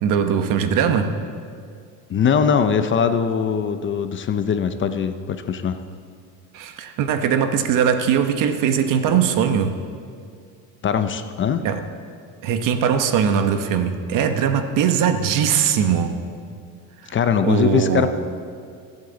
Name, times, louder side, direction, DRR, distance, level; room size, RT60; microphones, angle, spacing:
voice 1, 0.0-1.1 6.5-9.7 11.6-11.8 12.4-16.1 17.4-18.1, right 7 dB, 60° right, 7 dB, 1.2 m, -20 dB
voice 2, 2.1-5.8 10.8-11.7 17.1-18.1, left 7 dB, 35° left, 9 dB, 0.7 m, -21 dB
22.0 x 8.1 x 4.0 m, 2.2 s
supercardioid pair, 110°, 36 cm